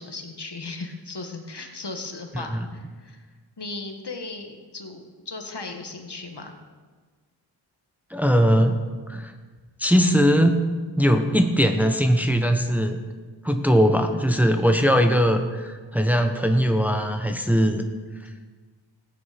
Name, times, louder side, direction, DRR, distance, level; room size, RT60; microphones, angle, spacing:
voice 1, 0.0-3.2 3.6-6.5, left 3 dB, 55° left, 4 dB, 1.7 m, -36 dB
voice 2, 8.1-8.8 9.1-9.3 9.8-10.7 11.0-13.0 13.4-17.8, equal, 5° right, 5 dB, 1.0 m, -20 dB
17.0 x 9.5 x 5.2 m, 1.4 s
wide cardioid pair, 75°, 47 cm